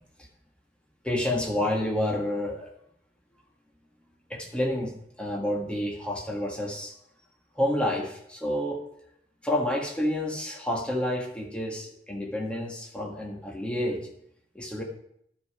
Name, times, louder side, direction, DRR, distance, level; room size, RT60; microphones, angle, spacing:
voice 1, 1.0-2.7 4.3-4.9 5.2-6.9 7.6-8.8 9.4-14.0 14.5-14.8, left 1 dB, 5° left, -1 dB, 1.8 m, -29 dB
12.0 x 6.1 x 5.0 m, 0.72 s
head